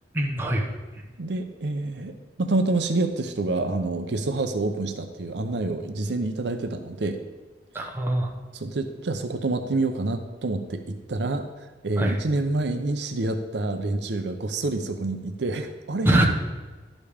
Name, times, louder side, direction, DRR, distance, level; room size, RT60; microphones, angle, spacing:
voice 1, 0.1-0.8 7.7-8.3 12.0-12.2 16.0-16.3, right 1 dB, 10° right, 0 dB, 0.9 m, -23 dB
voice 2, 1.2-2.1 2.4-7.2 8.5-16.2, right 2 dB, 65° right, 7 dB, 0.6 m, -27 dB
11.5 x 5.2 x 5.0 m, 1.3 s
head